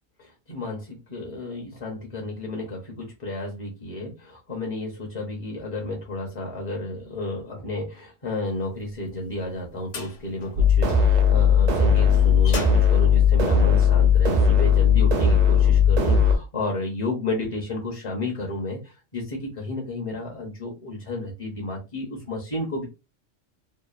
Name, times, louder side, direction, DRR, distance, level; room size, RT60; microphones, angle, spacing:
voice 1, 0.2-22.9, left 2 dB, 35° left, 0.5 m, -32 dB
sound 1, 8.9-14.2, left 3 dB, 75° left, 1.1 m, -39 dB
sound 2, 10.6-16.3, left 6 dB, 55° right, 0.5 m, -18 dB
2.9 x 2.2 x 2.3 m
omnidirectional pair, 1.3 m